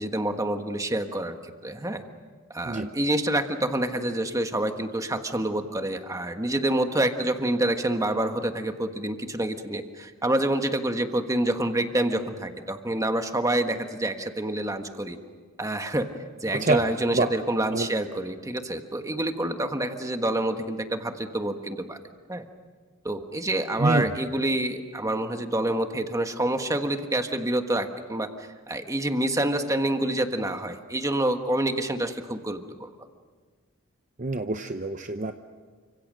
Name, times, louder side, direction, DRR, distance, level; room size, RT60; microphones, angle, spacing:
voice 1, 0.0-2.0 2.5-15.2 15.6-16.1 16.4-22.0 22.3-22.4 23.0-32.9, right 1 dB, 15° right, 6 dB, 1.5 m, -27 dB
voice 2, 34.2-35.3, right 3 dB, 35° right, 7 dB, 0.8 m, -25 dB
29.5 x 26.0 x 6.4 m, 1.5 s
head